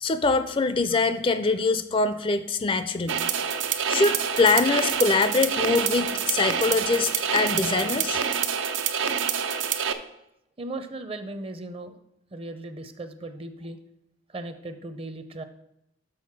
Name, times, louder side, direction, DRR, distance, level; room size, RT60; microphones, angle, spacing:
voice 1, 0.0-3.2 3.9-8.2, left 3 dB, 30° left, 11 dB, 0.4 m, -23 dB
sound 1, 3.1-9.9, right 7 dB, 80° right, 0.6 m, -27 dB
voice 2, 10.6-12.0 12.3-13.8 14.3-15.4, right 2 dB, 30° right, 10 dB, 0.6 m, -37 dB
6.4 x 6.2 x 5.9 m, 0.81 s
head